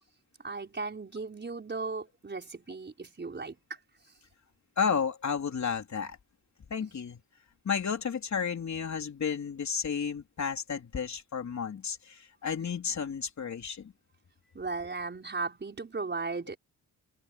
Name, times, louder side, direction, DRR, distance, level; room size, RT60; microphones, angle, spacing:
voice 1, 0.4-3.6 14.5-16.6, right 4 dB, 30° right, 5.4 m, -36 dB
voice 2, 4.8-6.2 6.7-7.2 7.6-13.9, left 6 dB, 50° left, 3.8 m, -32 dB
cardioid pair, 115°, 36 cm